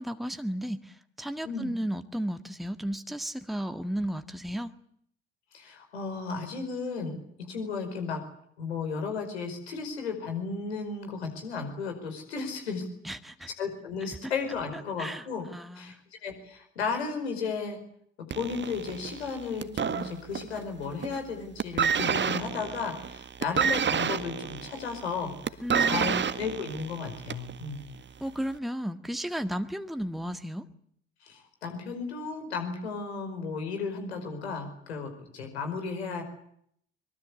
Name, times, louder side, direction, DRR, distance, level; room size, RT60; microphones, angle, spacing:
voice 1, 0.0-4.7 13.0-13.5 14.2-14.3 14.7-16.0 25.6-26.2 28.2-30.6, equal, ahead, 9 dB, 1.7 m, -34 dB
voice 2, 5.5-8.2 8.6-12.9 13.6-15.4 15.7-15.9 16.2-17.8 18.2-25.3 25.8-27.9 31.2-36.2, left 5 dB, 80° left, 5 dB, 5.2 m, -34 dB
sound 1, 18.3-20.6 20.9-21.3 21.6-27.6 28.4-28.5, right 7 dB, 35° right, 1.8 m, -29 dB
24.0 x 23.0 x 8.4 m, 0.67 s
figure-of-eight pair, 50°, 32 cm